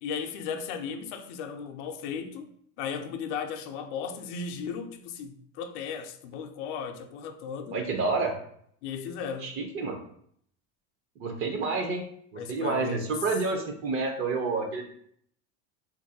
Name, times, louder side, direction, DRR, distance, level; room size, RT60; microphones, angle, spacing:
voice 1, 0.0-7.8 8.8-9.6 12.4-13.1, left 6 dB, 70° left, 0.5 m, -36 dB
voice 2, 7.7-8.3 9.4-10.0 11.2-12.0 12.3-14.9, right 3 dB, 35° right, 0.6 m, -29 dB
2.8 x 2.6 x 2.7 m
supercardioid pair, 120°, 37 cm